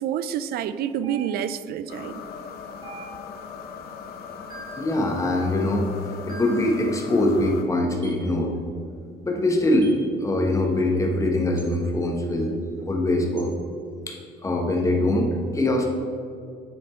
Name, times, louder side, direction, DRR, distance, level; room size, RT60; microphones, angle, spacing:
voice 1, 0.0-2.2, right 9 dB, 65° right, 0.4 m, -28 dB
sound 1, 1.0-1.7 2.8-3.5 4.5-4.9 6.3-6.7 8.0-8.3 9.8-10.1 11.6-11.8 13.4-13.6, right 3 dB, 25° right, 1.2 m, -43 dB
sound 2, 1.9-7.6, left 6 dB, 65° left, 0.8 m, -39 dB
voice 2, 4.8-8.5 9.2-9.9 10.2-12.6 12.8-13.5 14.1-14.2 14.4-15.9, left 1 dB, 20° left, 1.1 m, -23 dB
9.9 x 4.2 x 4.3 m
cardioid pair, 110°, 17 cm